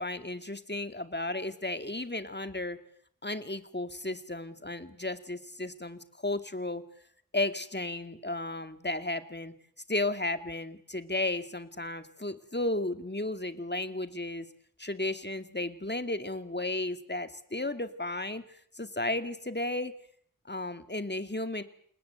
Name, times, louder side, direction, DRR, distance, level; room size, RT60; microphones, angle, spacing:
voice 1, 0.0-2.8 3.2-6.8 7.3-9.5 9.9-14.5 14.8-19.9 20.4-21.6, left 2 dB, 30° left, 9 dB, 2.3 m, -34 dB
29.0 x 18.5 x 8.2 m, 0.62 s
wide cardioid pair, 45°, 33 cm